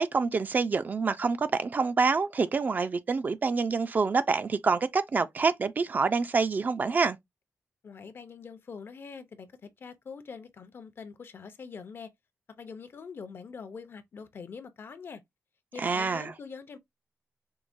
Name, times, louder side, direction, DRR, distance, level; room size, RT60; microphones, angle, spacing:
voice 1, 0.0-7.2 15.8-16.3, right 4 dB, 35° right, 0.3 m, -26 dB
voice 2, 7.8-9.5 9.8-12.1 12.5-15.2 15.7-16.8, left 5 dB, 50° left, 0.5 m, -44 dB
4.5 x 2.1 x 2.5 m
wide cardioid pair, 140°, 5 cm